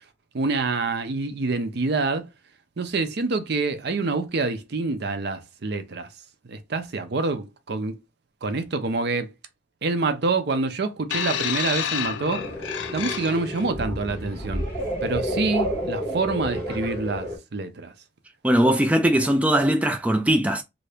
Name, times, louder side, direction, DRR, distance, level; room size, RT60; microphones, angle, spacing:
voice 1, 0.3-2.3 2.8-6.1 6.5-7.9 8.4-9.3 9.8-12.5 12.9-14.7 15.0-17.9, right 3 dB, 60° right, 0.5 m, -26 dB
sound 1, 11.1-13.7 14.6-14.7, left 9 dB, 75° left, 0.4 m, -29 dB
sound 2, 12.3-17.4, equal, 10° left, 1.7 m, -30 dB
voice 2, 18.4-20.6, right 1 dB, 10° right, 0.3 m, -20 dB
2.7 x 2.6 x 3.3 m
head